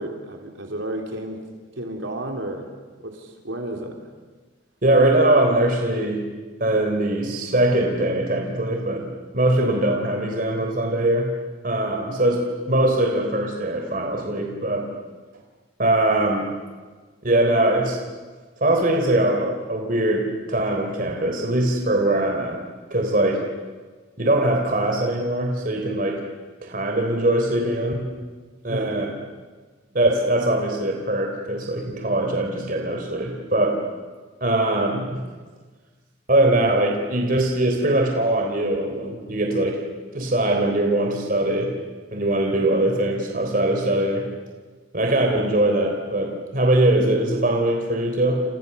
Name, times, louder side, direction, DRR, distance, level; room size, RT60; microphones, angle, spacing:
voice 1, 0.0-1.5 1.8-2.7 3.0-4.1 28.7-29.0, right 1 dB, 80° right, 2 dB, 3.4 m, -32 dB
voice 2, 4.8-6.2 6.6-11.3 11.6-14.9 15.8-16.6 17.2-18.0 18.6-22.6 22.9-23.5 24.2-26.2 26.6-28.1 28.6-29.1 29.9-33.8 34.4-35.2 36.3-39.8 40.1-41.8 42.1-44.3 44.9-48.4, right 1 dB, 45° right, 2 dB, 3.6 m, -21 dB
30.0 x 29.0 x 6.9 m, 1.4 s
head